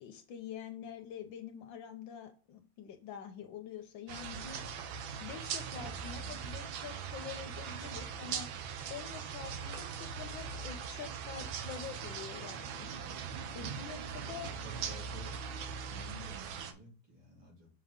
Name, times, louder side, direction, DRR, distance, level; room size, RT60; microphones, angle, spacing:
voice 1, 0.0-4.6 5.2-8.5 8.9-12.9 13.5-14.5, left 8 dB, 80° left, 6 dB, 1.4 m, -46 dB
sound 1, 4.1-16.7, right 6 dB, 90° right, 1.6 m, -41 dB
voice 2, 14.1-15.3 15.9-17.7, right 2 dB, 65° right, -4 dB, 3.8 m, -52 dB
5.8 x 4.5 x 3.6 m, 0.37 s
omnidirectional pair, 2.1 m